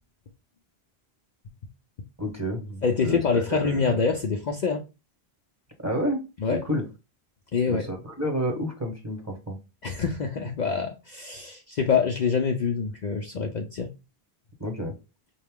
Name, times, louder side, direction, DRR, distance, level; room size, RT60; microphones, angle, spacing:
voice 1, 2.2-4.0 5.8-6.2 6.5-6.8 7.7-9.6 14.6-14.9, equal, 15° right, 1.0 m, -30 dB
voice 2, 2.8-4.8 6.4-6.6 7.5-7.9 9.8-13.9, left 5 dB, 55° left, 0.6 m, -25 dB
5.3 x 2.3 x 3.6 m
omnidirectional pair, 1.1 m